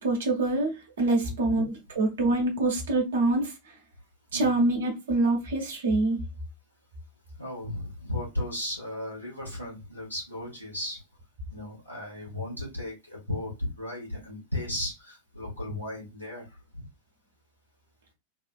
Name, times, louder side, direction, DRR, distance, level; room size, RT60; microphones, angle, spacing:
voice 1, 0.0-3.5 4.3-6.2, right 2 dB, 65° right, 1.0 m, -25 dB
voice 2, 1.2-1.6 4.3-4.6 7.4-11.0 11.5-16.5 16.7-16.9, left 1 dB, 90° left, 1.6 m, -35 dB
3.5 x 2.5 x 2.3 m
figure-of-eight pair, 90°, 0 cm